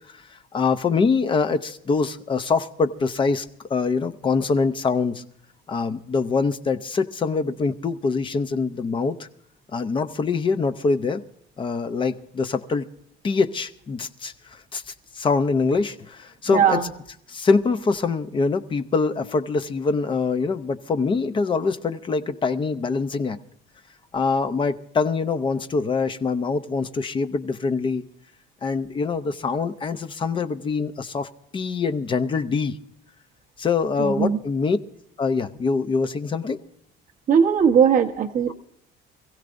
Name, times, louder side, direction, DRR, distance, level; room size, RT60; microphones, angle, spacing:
voice 1, 0.1-5.2 5.7-9.3 9.7-11.2 11.6-12.9 13.2-16.8 17.3-23.4 24.1-28.0 28.6-32.8 33.6-34.8 35.2-36.6, left 4 dB, 25° left, 0.6 m, -24 dB
voice 2, 16.5-16.9 34.0-34.4 37.3-38.5, right 7 dB, 40° right, 1.1 m, -19 dB
26.0 x 16.0 x 2.6 m
cardioid pair, 180°, 21 cm